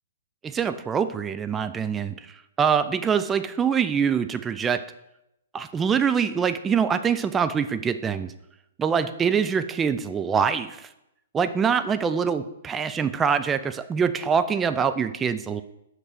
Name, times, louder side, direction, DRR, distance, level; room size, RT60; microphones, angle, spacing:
voice 1, 0.4-4.8 5.5-8.3 8.8-10.9 11.3-15.6, right 6 dB, 15° right, 10 dB, 0.4 m, -24 dB
6.0 x 5.4 x 5.5 m, 0.84 s
figure-of-eight pair, 115°, 0 cm